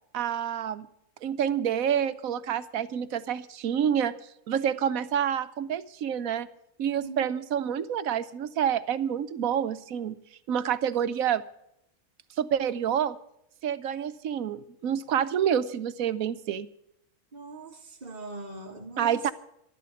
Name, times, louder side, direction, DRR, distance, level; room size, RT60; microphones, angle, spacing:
voice 1, 0.1-0.9 1.2-4.1 4.5-6.5 6.8-10.2 10.5-11.4 12.4-13.2 13.6-16.7 19.0-19.3, right 9 dB, 80° right, 13 dB, 1.2 m, -28 dB
voice 2, 17.3-19.2, right 2 dB, 30° right, 0 dB, 1.7 m, -41 dB
12.0 x 12.0 x 6.9 m, 0.77 s
omnidirectional pair, 1.4 m